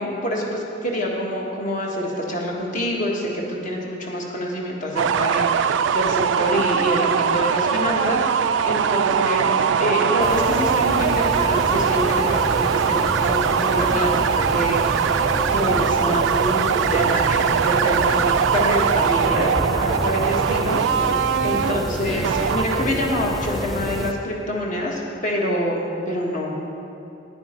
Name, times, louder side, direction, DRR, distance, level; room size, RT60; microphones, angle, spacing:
voice 1, 0.0-26.6, equal, 45° left, -2 dB, 1.6 m, -26 dB
sound 1, 5.0-23.1, right 7 dB, 75° right, 0.3 m, -21 dB
sound 2, 10.2-24.1, equal, ahead, 0.4 m, -28 dB
10.5 x 9.5 x 4.5 m, 2.7 s
head